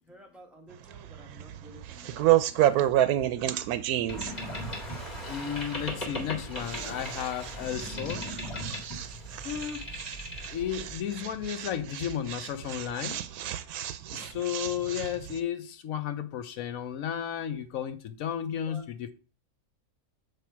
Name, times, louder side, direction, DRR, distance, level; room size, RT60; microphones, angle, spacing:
voice 1, 0.0-3.3 14.1-14.4 18.7-18.8, equal, ahead, 1.2 m, -53 dB
sound 1, 0.7-15.4, right 12 dB, 85° right, 1.1 m, -31 dB
Boat Water vehicle, 4.1-11.0, equal, 30° left, 2.0 m, -38 dB
voice 2, 5.3-8.2 9.4-9.8 10.5-13.2 14.1-19.1, left 9 dB, 70° left, 1.1 m, -33 dB
7.7 x 3.4 x 4.5 m
omnidirectional pair, 1.6 m